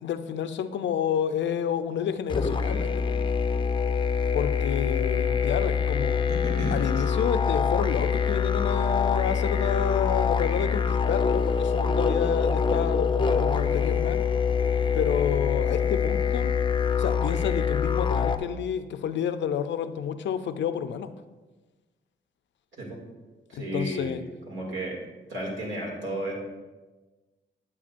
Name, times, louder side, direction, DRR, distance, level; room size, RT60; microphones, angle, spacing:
voice 1, 0.0-3.2 4.3-6.2 6.7-14.2 14.9-16.5 17.0-21.1 23.5-24.2, left 8 dB, 80° left, 10 dB, 0.5 m, -30 dB
sound 1, 2.3-18.4, left 6 dB, 25° left, 0.5 m, -25 dB
voice 2, 6.3-6.8 22.8-23.0 23.5-24.2 24.5-25.0 25.3-26.3, right 1 dB, 85° right, -3 dB, 2.3 m, -32 dB
8.6 x 8.4 x 2.5 m, 1.2 s
cardioid pair, 80°, 19 cm